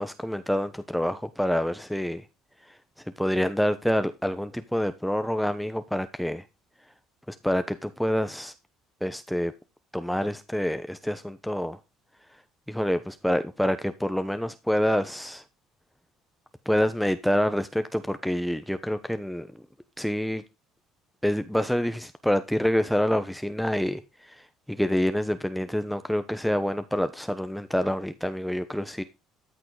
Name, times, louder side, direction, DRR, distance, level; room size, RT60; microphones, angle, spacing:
voice 1, 0.0-2.2 2.7-2.8 3.2-6.4 7.3-8.5 9.0-9.5 9.9-11.8 12.7-15.4 16.6-19.6 20.0-20.4 21.2-29.0, equal, ahead, 1.0 m, -27 dB
13.5 x 6.0 x 4.9 m
supercardioid pair, 80°, 0 cm